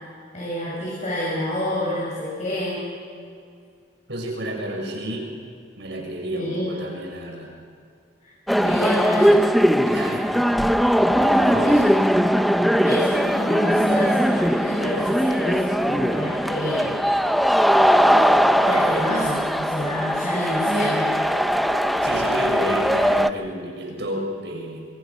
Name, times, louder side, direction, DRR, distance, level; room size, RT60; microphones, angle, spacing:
voice 1, 0.3-2.9 6.3-6.8 8.6-9.4 11.6-11.8 12.8-17.0 18.1-18.3 18.6-21.2, left 1 dB, 40° left, -6 dB, 7.6 m, -28 dB
voice 2, 4.1-5.3 5.8-7.5 9.8-10.3 11.2-11.8 22.0-24.9, right 1 dB, 70° right, 1 dB, 6.9 m, -30 dB
sound 1, 8.5-23.3, equal, ahead, 0.6 m, -20 dB
27.0 x 24.5 x 6.3 m, 2.3 s
head